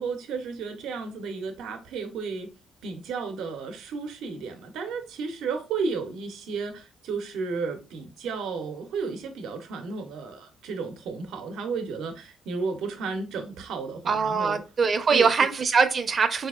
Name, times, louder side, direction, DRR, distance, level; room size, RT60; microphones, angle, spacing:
voice 1, 0.0-2.5 2.8-14.6 15.1-15.3, right 5 dB, 85° right, 0.6 m, -33 dB
voice 2, 14.1-16.5, right 5 dB, 45° right, 0.5 m, -23 dB
4.1 x 2.7 x 2.3 m
cardioid pair, 90°, 0 cm